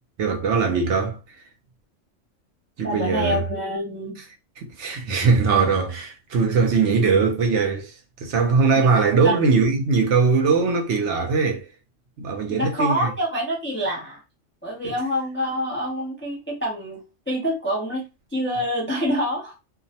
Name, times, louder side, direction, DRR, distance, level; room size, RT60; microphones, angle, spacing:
voice 1, 0.2-1.2 2.8-3.4 4.6-7.9 8.2-11.7 12.2-13.1 14.8-14.9, right 4 dB, 70° right, 0.9 m, -20 dB
voice 2, 2.8-4.3 9.2-9.5 12.5-14.2 14.6-18.0 18.3-19.5, equal, 15° left, 0.4 m, -26 dB
2.5 x 2.1 x 2.7 m
omnidirectional pair, 1.3 m